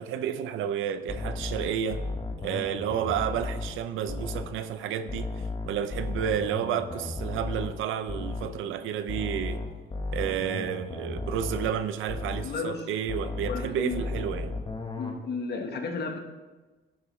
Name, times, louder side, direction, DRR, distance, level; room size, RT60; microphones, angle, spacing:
voice 1, 0.0-2.0 2.4-9.6 10.1-14.5, right 9 dB, 85° right, 11 dB, 0.6 m, -31 dB
sound 1, 1.1-4.6 5.1-8.6 9.1-12.6 13.1-15.1, left 3 dB, 25° left, 1.2 m, -35 dB
voice 2, 12.4-12.9 13.4-14.0 15.0-16.2, left 4 dB, 55° left, 4 dB, 1.2 m, -33 dB
11.0 x 6.6 x 3.1 m, 1.3 s
cardioid pair, 90°, 20 cm